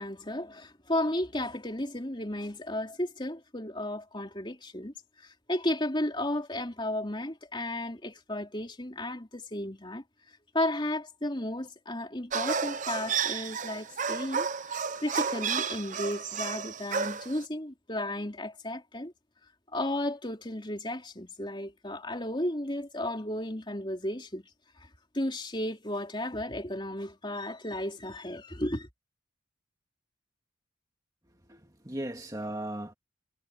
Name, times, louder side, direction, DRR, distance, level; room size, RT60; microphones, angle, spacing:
voice 1, 0.0-10.0 10.5-19.1 19.7-24.4 24.8-24.9 25.1-28.9, left 1 dB, 25° left, 3.5 m, -34 dB
sound 1, 12.3-17.4, right 6 dB, 35° right, 0.7 m, -32 dB
voice 2, 31.3-32.9, right 1 dB, 15° right, 1.9 m, -37 dB
head